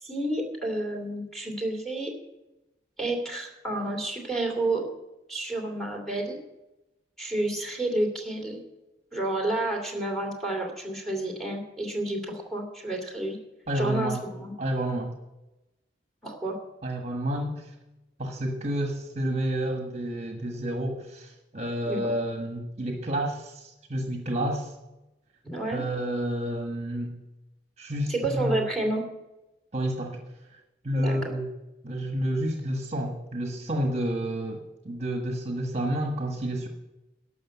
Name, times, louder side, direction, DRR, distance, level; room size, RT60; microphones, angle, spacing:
voice 1, 0.0-2.1 3.0-4.8 5.3-6.4 7.2-8.6 9.1-13.4 13.7-14.5 16.2-16.6 21.9-22.1 25.4-25.8 28.1-29.1 30.9-31.3, right 2 dB, 5° left, 1 dB, 2.8 m, -30 dB
voice 2, 13.7-14.2 14.6-15.1 16.8-17.7 18.2-24.7 25.7-27.2 27.8-28.6 29.7-30.2 30.8-31.5 31.8-36.7, right 1 dB, 40° right, 3 dB, 1.4 m, -30 dB
12.0 x 6.4 x 9.4 m, 0.99 s
head